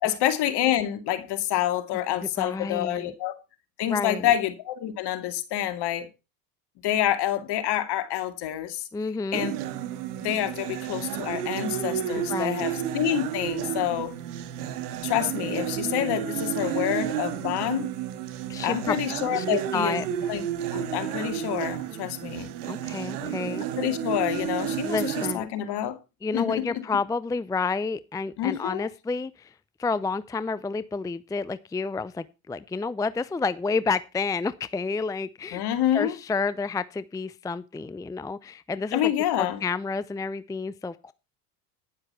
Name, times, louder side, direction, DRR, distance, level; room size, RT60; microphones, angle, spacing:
voice 1, 0.0-3.3 3.8-6.1 6.8-8.8 9.3-9.5 10.2-14.1 15.0-17.9 18.6-20.0 20.3-20.4 20.7-22.5 23.2-23.3 23.8-26.0 26.3-26.8 28.4-28.9 35.5-36.1 38.9-39.6, left 12 dB, 55° left, 2.5 m, -27 dB
voice 2, 2.4-3.1 3.9-4.3 8.9-9.5 12.1-12.7 18.5-19.0 19.3-20.1 22.6-23.6 24.8-25.5 26.2-29.5 29.8-35.6 35.9-39.1 39.4-41.1, left 4 dB, 10° left, 0.5 m, -30 dB
sound 1, 9.3-25.3, right 10 dB, 75° right, 1.8 m, -31 dB
11.0 x 10.5 x 4.4 m
hypercardioid pair, 70°, 46 cm